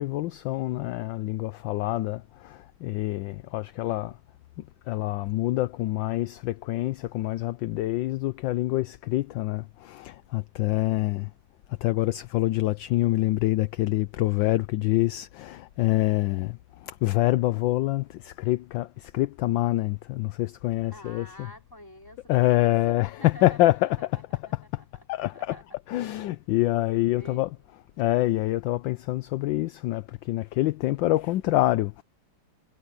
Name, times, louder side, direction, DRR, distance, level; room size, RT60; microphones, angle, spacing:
voice 1, 0.0-4.2 4.9-11.3 11.8-21.3 22.3-24.8 25.1-25.6 25.9-32.0, left 16 dB, 75° left, 1.2 m, -26 dB
voice 2, 20.9-25.6 27.1-27.4, left 1 dB, 10° left, 4.6 m, -48 dB
omnidirectional pair, 2.3 m